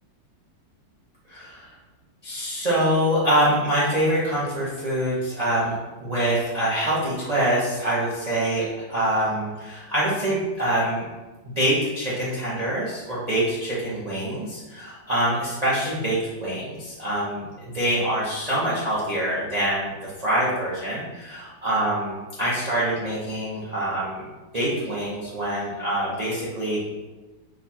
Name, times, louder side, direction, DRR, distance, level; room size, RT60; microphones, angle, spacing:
voice 1, 1.3-1.7 2.2-11.1 11.6-24.2 24.5-26.8, right 1 dB, 40° right, -8 dB, 0.6 m, -25 dB
4.8 x 2.3 x 4.2 m, 1.2 s
omnidirectional pair, 2.0 m